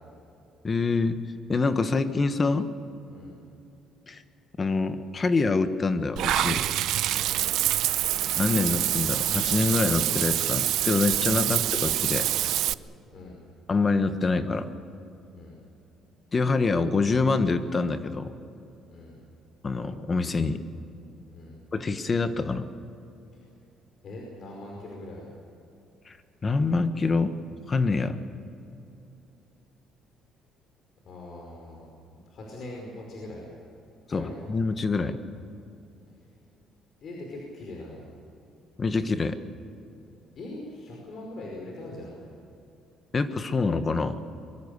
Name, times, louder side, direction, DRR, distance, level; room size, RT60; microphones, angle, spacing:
voice 1, 0.6-1.2 1.5-2.7 4.1-4.2 4.6-6.6 8.4-12.3 13.7-14.7 16.3-18.3 19.6-20.6 21.7-22.7 26.1-26.2 26.4-27.3 27.7-28.2 34.1-35.2 38.8-39.4 43.1-44.2, left 3 dB, 25° left, 10 dB, 1.3 m, -25 dB
Water / Bathtub (filling or washing), 6.2-12.7, right 13 dB, 70° right, 0.6 m, -26 dB
voice 2, 24.0-25.3 31.0-33.5 34.1-34.5 37.0-38.0 40.4-42.2, left 2 dB, 45° left, -1 dB, 5.1 m, -42 dB
24.0 x 23.5 x 6.8 m, 2.8 s
cardioid pair, 145°, 0 cm